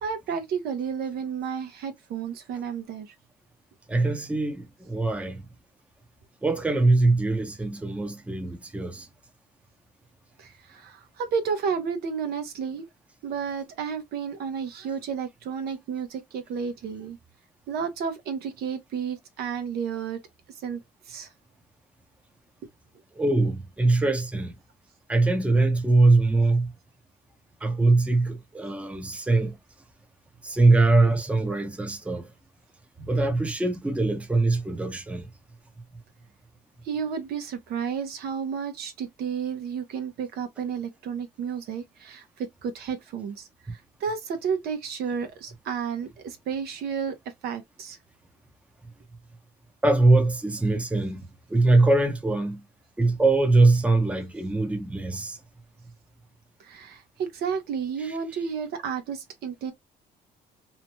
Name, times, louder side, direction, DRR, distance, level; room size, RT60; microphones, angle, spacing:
voice 1, 0.0-3.1 10.4-12.9 13.2-17.2 17.7-20.2 20.6-20.8 21.1-21.3 36.8-47.2 47.4-48.0 56.6-59.7, right 6 dB, 70° right, 0.8 m, -32 dB
voice 2, 3.9-5.5 6.4-9.1 23.2-24.6 25.1-26.7 27.6-29.6 30.4-32.3 33.0-35.3 49.8-52.6 53.0-55.4, right 2 dB, 5° right, 0.6 m, -22 dB
2.7 x 2.2 x 3.0 m
cardioid pair, 110°, 17 cm